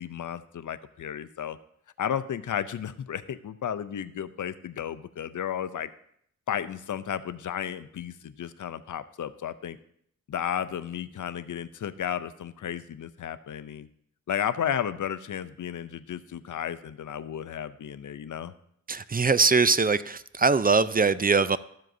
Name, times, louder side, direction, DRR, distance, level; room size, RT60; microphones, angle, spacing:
voice 1, 0.0-1.6 2.0-5.9 6.5-9.8 10.3-13.9 14.3-18.5, left 9 dB, 75° left, 13 dB, 0.5 m, -33 dB
voice 2, 18.9-21.6, right 4 dB, 30° right, 15 dB, 0.4 m, -22 dB
13.5 x 7.5 x 2.7 m, 0.69 s
cardioid pair, 50°, 31 cm